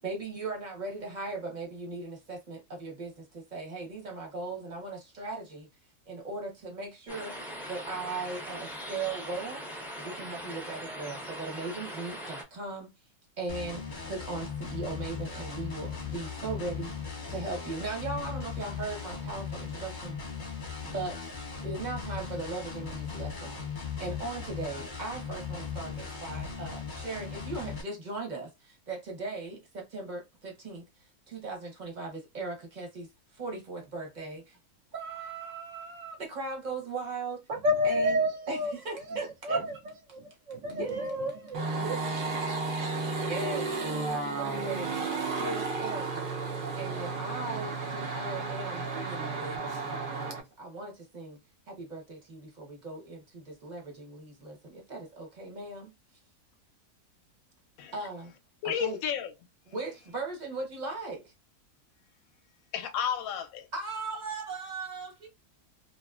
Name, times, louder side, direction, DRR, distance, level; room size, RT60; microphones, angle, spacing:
voice 1, 0.0-5.7 6.1-7.4 7.7-9.6 10.0-12.9 13.4-20.2 20.8-30.9 31.3-34.6 34.9-37.4 37.8-38.2 38.5-39.6 40.7-41.9 43.3-43.7 44.1-44.9 45.3-46.3 46.8-51.4 51.7-55.9 57.9-58.3 58.6-59.0 59.7-61.3 63.7-65.3, right 3 dB, 35° right, 0.8 m, -38 dB
sound 1, 7.1-12.4, equal, 5° right, 0.3 m, -40 dB
sound 2, 13.5-27.8, left 5 dB, 40° left, 0.8 m, -38 dB
voice 2, 37.5-38.8 39.1-39.2 39.4-39.8 40.1-42.5, left 1 dB, 60° right, 0.9 m, -30 dB
sound 3, 41.5-50.4, right 3 dB, 90° right, 0.4 m, -33 dB
voice 3, 58.6-59.3 62.7-63.7, left 8 dB, 70° left, 0.9 m, -31 dB
2.8 x 2.4 x 2.3 m
omnidirectional pair, 1.8 m